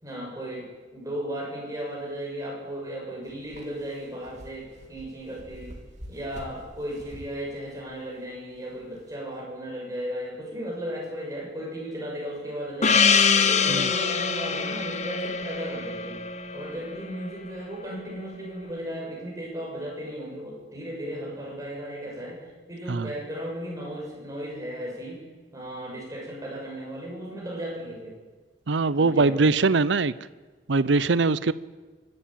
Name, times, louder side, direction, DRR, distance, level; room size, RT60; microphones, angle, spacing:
voice 1, 0.0-5.8 6.1-13.1 13.3-16.2 16.5-25.2 25.5-28.1 28.9-29.5, equal, 20° right, -2 dB, 7.0 m, -35 dB
sound 1, 3.2-9.1, equal, 40° right, 3.4 m, -47 dB
Gong, 12.8-17.6, left 6 dB, 40° left, 1.1 m, -24 dB
voice 2, 28.7-30.1 30.7-31.5, right 3 dB, 75° right, 17 dB, 0.7 m, -22 dB
24.5 x 12.0 x 9.1 m, 1.3 s
head